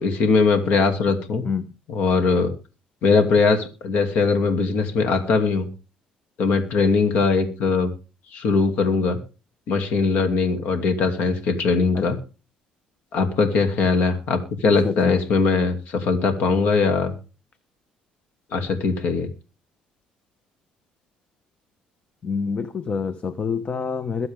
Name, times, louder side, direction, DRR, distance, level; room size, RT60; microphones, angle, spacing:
voice 1, 0.0-1.4 1.9-2.5 3.0-5.7 6.4-7.9 8.3-9.2 9.7-12.2 13.1-17.1 18.5-19.3, left 4 dB, 65° left, 2.6 m, -20 dB
voice 2, 14.6-15.2 22.2-24.3, left 5 dB, 35° left, 1.0 m, -27 dB
22.5 x 7.8 x 3.6 m
supercardioid pair, 90°, 3 cm